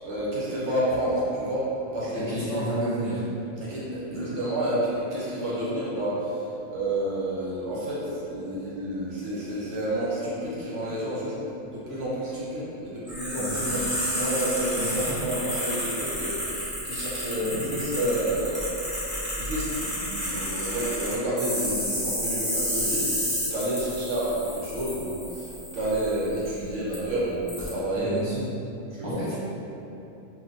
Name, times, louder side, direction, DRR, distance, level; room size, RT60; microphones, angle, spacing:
voice 1, 0.0-2.7 3.6-11.3 11.7-23.1 23.5-28.2 28.9-29.2, right 1 dB, 70° right, -8 dB, 1.0 m, -30 dB
voice 2, 2.3-3.2 4.1-4.4 13.4-13.5 14.7-15.2 17.4-17.8 27.9-28.5 29.0-29.3, equal, 40° left, -13 dB, 0.5 m, -32 dB
sound 1, 13.1-26.5 26.9-27.0 27.5-27.7, equal, 5° left, 0.8 m, -31 dB
2.6 x 2.4 x 3.5 m, 3.0 s
omnidirectional pair, 1.4 m